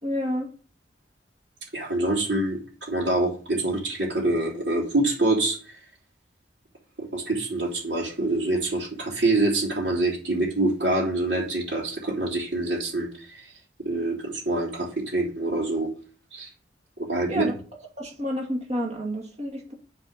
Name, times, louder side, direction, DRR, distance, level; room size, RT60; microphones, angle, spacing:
voice 1, 0.0-0.5 17.3-17.5 18.0-19.7, equal, 40° right, 0 dB, 2.4 m, -29 dB
voice 2, 1.7-5.8 7.0-13.5 13.8-15.9 16.3-16.5 17.1-17.5, right 2 dB, 75° right, -6 dB, 3.2 m, -26 dB
8.2 x 4.4 x 6.6 m, 0.40 s
head